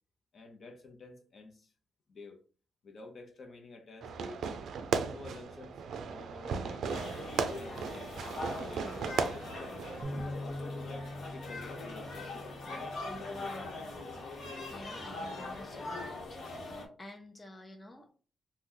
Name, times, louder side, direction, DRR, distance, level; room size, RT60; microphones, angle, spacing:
voice 1, 0.3-1.7 2.1-2.4 2.8-4.4 5.1-9.7 10.2-12.6, left 2 dB, 55° left, 0.7 m, -51 dB
Fireworks, 4.0-10.0, right 5 dB, 80° right, 0.3 m, -36 dB
sound 1, 6.9-16.9, left 2 dB, 80° left, 1.0 m, -41 dB
Bass guitar, 10.0-16.3, left 1 dB, 40° right, 0.6 m, -45 dB
voice 2, 14.7-16.2 16.5-18.1, left 1 dB, 20° left, 0.6 m, -50 dB
2.9 x 2.2 x 3.7 m
cardioid pair, 110°, 0 cm